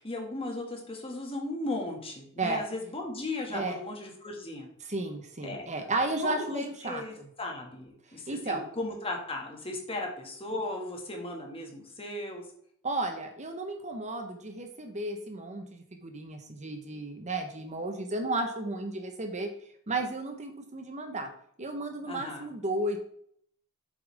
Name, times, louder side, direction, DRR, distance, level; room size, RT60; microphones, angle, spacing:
voice 1, 0.0-4.7 5.4-5.7 6.2-12.5 22.0-22.5, left 2 dB, 25° left, 1 dB, 2.1 m, -36 dB
voice 2, 4.8-7.3 8.3-8.7 12.8-19.5 19.9-21.3 21.6-23.0, right 2 dB, 35° right, 5 dB, 1.1 m, -33 dB
8.7 x 7.7 x 3.6 m, 0.64 s
head